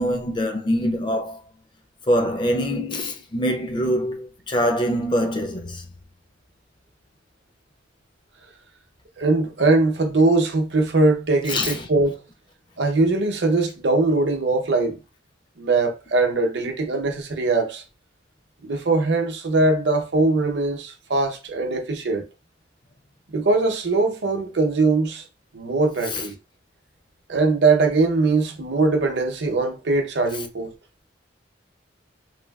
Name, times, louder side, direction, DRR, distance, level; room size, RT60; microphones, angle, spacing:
voice 1, 0.0-1.4 2.1-5.9 11.5-11.9 26.1-26.3, equal, 25° left, 0.4 m, -24 dB
voice 2, 9.2-12.2 12.8-15.0 15.6-17.8 18.6-22.2 23.3-25.3 25.5-26.3 27.3-30.7, right 3 dB, 65° right, 0.7 m, -21 dB
3.2 x 2.2 x 2.3 m
head